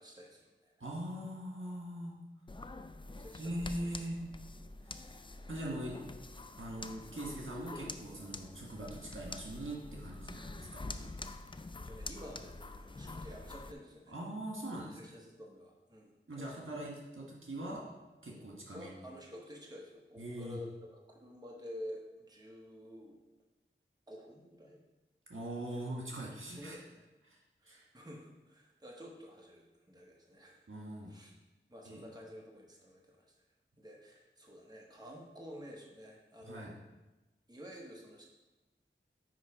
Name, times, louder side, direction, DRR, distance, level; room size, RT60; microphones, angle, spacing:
voice 1, 0.0-0.7 3.2-3.7 5.0-5.4 5.7-6.0 11.8-14.2 14.9-16.9 18.7-23.2 24.1-24.8 25.6-25.9 26.3-27.0 27.6-30.6 31.1-31.3 31.7-33.4 33.8-36.7 37.5-38.2, equal, 20° right, -2 dB, 1.2 m, -50 dB
voice 2, 0.8-2.2 3.4-4.2 4.8-5.1 5.5-6.0 6.6-10.8 14.1-15.0 16.3-17.9 18.2-18.9 20.2-20.6 25.3-26.8 27.3-27.4 27.6-27.9 30.7-31.1 31.8-32.0 36.5-36.7, right 1 dB, 70° right, -3 dB, 1.6 m, -42 dB
sound 1, 2.5-13.7, left 2 dB, 25° left, 0.4 m, -46 dB
9.5 x 3.3 x 4.8 m, 1.1 s
wide cardioid pair, 50°, 21 cm